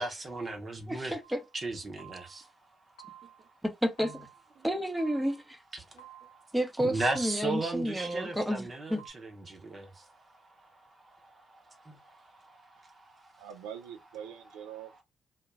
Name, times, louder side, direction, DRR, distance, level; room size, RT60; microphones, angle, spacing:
voice 1, 0.0-1.1 1.6-2.5 3.2-3.5 4.6-4.7 5.8-13.5, right 2 dB, 40° right, 0.8 m, -38 dB
voice 2, 0.9-1.4 3.6-4.3 4.6-5.6 6.5-9.0, equal, 5° right, 0.7 m, -31 dB
sound 1, 1.2-1.6 2.0-2.6 3.0-3.6 4.0-4.6 5.0-5.6 6.0-6.6 7.0-7.6 8.0-8.5 9.0-9.1, right 10 dB, 85° left, 0.5 m, -52 dB
voice 3, 13.4-15.0, right 9 dB, 80° right, 0.3 m, -44 dB
2.3 x 2.2 x 3.1 m
hypercardioid pair, 45°, 0 cm